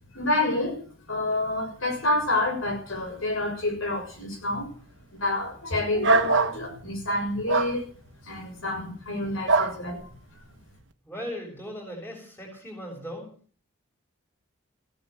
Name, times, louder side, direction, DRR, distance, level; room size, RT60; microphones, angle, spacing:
voice 1, 0.1-0.8 1.1-4.7 5.1-7.9 8.2-10.0, left 1 dB, 80° left, 3 dB, 6.6 m, -28 dB
sound 1, 6.0-6.6 7.5-7.7 9.5-9.8, right 3 dB, 60° right, 1.4 m, -21 dB
voice 2, 11.1-13.3, equal, 10° left, 0 dB, 6.7 m, -38 dB
16.0 x 10.5 x 7.9 m, 0.43 s
head